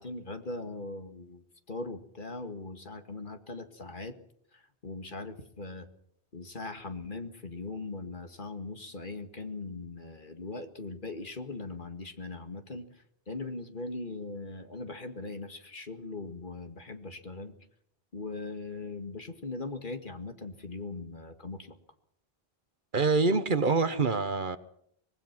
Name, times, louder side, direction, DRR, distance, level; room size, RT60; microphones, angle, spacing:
voice 1, 0.0-4.2 4.5-5.9 6.3-17.5 18.1-21.8, left 3 dB, 50° left, 2.1 m, -40 dB
voice 2, 22.9-24.6, right 4 dB, 50° right, 1.2 m, -25 dB
24.5 x 20.0 x 6.1 m
omnidirectional pair, 1.1 m